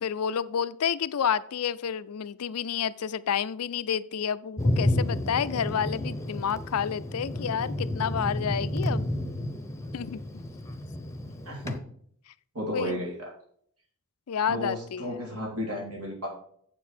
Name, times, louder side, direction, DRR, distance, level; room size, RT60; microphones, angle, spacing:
voice 1, 0.0-9.1 9.9-10.2 12.7-13.0 14.3-15.4, left 7 dB, 80° left, 16 dB, 0.5 m, -30 dB
Thunder, 4.6-11.8, left 1 dB, 15° left, 0.7 m, -31 dB
voice 2, 11.5-11.8 12.5-13.1 14.5-16.3, left 1 dB, 85° right, -2 dB, 2.9 m, -33 dB
7.9 x 7.2 x 4.3 m, 0.64 s
head